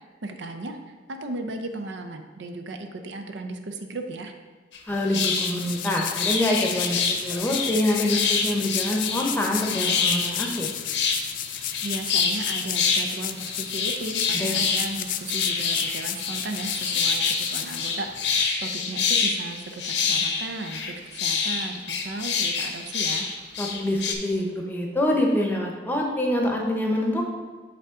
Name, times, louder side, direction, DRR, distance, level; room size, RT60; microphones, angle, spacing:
voice 1, 0.2-0.8 1.1-4.3 11.8-23.3, right 2 dB, 85° right, 6 dB, 0.6 m, -35 dB
sound 1, 4.7-4.8 5.1-13.1 13.4-24.2, left 5 dB, 75° left, 0.7 m, -27 dB
sound 2, 4.9-18.5, left 11 dB, 50° left, 0.3 m, -33 dB
voice 2, 4.9-10.7 14.3-14.6 23.6-27.3, left 1 dB, 10° left, 0 dB, 0.8 m, -25 dB
8.3 x 3.6 x 3.7 m, 1.4 s
head